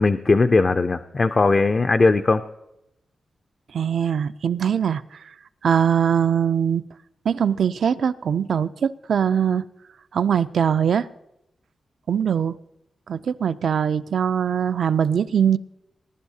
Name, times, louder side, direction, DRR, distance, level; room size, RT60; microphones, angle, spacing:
voice 1, 0.0-2.4, left 3 dB, 30° left, 8 dB, 0.3 m, -18 dB
voice 2, 3.7-5.3 5.6-6.8 7.2-9.6 10.1-11.1 12.1-12.6 13.1-15.6, right 8 dB, 65° right, 14 dB, 0.3 m, -22 dB
19.5 x 11.0 x 2.7 m, 0.84 s
wide cardioid pair, 180°, 0 cm